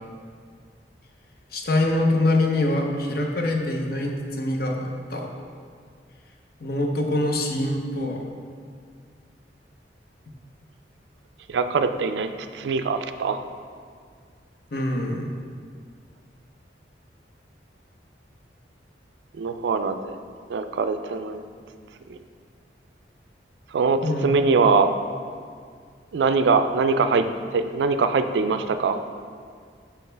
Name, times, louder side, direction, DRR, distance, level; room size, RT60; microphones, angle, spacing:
voice 1, 1.5-5.3 6.6-8.2 14.7-15.3 24.0-24.3, left 1 dB, 55° left, 2 dB, 0.7 m, -24 dB
voice 2, 11.5-13.4 19.4-20.1 20.5-21.4 22.1-22.2 23.7-24.9 26.1-27.2 27.5-29.0, right 4 dB, 80° right, 9 dB, 0.3 m, -22 dB
6.3 x 5.6 x 3.3 m, 2.1 s
head